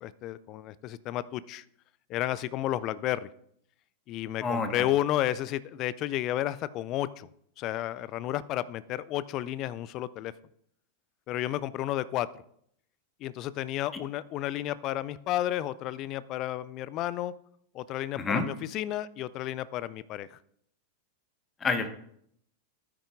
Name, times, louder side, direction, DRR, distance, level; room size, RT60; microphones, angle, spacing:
voice 1, 0.0-1.6 2.1-3.3 4.1-7.3 7.6-10.3 11.3-12.3 13.2-17.3 17.7-20.4, left 13 dB, 35° left, 18 dB, 0.4 m, -32 dB
voice 2, 4.4-4.8 18.2-18.5 21.6-21.9, left 4 dB, 20° left, 7 dB, 1.1 m, -28 dB
12.5 x 9.7 x 2.4 m, 0.68 s
figure-of-eight pair, 90°, 0 cm